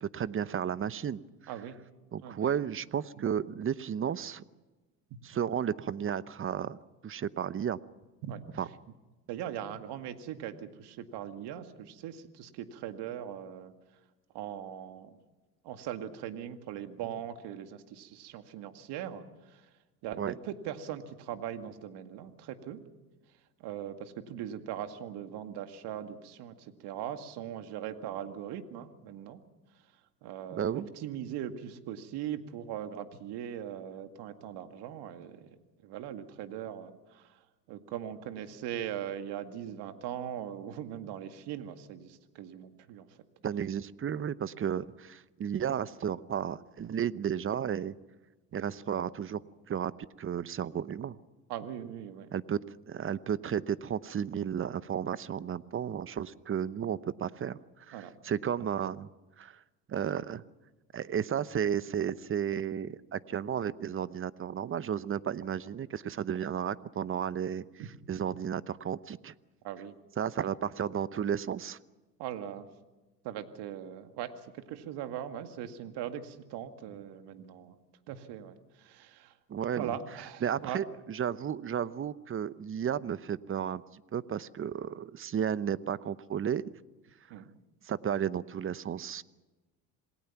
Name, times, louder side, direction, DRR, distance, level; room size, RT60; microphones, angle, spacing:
voice 1, 0.0-1.2 2.1-4.4 5.2-6.8 7.0-7.8 8.6-8.7 20.2-20.3 30.5-30.9 43.4-47.9 48.5-49.4 49.7-49.9 50.2-51.2 52.3-52.6 52.9-59.1 59.4-59.6 59.9-60.4 60.9-67.6 68.1-69.3 70.2-71.8 79.5-79.9 80.4-86.6 87.8-89.2, right 8 dB, 30° right, 17 dB, 0.8 m, -33 dB
voice 2, 1.5-1.8 2.2-2.5 3.1-3.2 5.1-5.2 8.2-8.4 9.3-13.7 14.3-15.2 15.6-19.7 20.0-22.8 23.6-29.4 30.2-35.6 35.8-37.4 37.7-43.2 48.5-48.6 51.5-52.3 57.9-58.1 67.8-67.9 69.6-69.9 70.4-70.5 72.2-72.7 73.2-77.8 78.1-79.3 79.7-80.8 87.3-87.5, right 10 dB, 60° right, 8 dB, 2.2 m, -40 dB
27.0 x 19.5 x 5.9 m, 1.2 s
hypercardioid pair, 80°, 46 cm